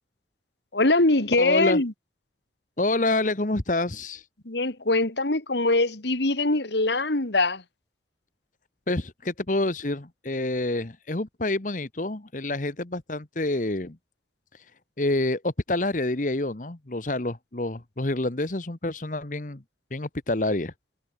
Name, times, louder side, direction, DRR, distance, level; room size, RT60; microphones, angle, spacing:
voice 1, 0.7-1.9 4.5-7.6, left 2 dB, 75° left, 2.3 m, -22 dB
voice 2, 1.4-1.8 2.8-4.2 8.9-14.0 14.5-14.6 15.0-19.6 19.9-20.7, left 2 dB, 45° left, 1.3 m, -27 dB
head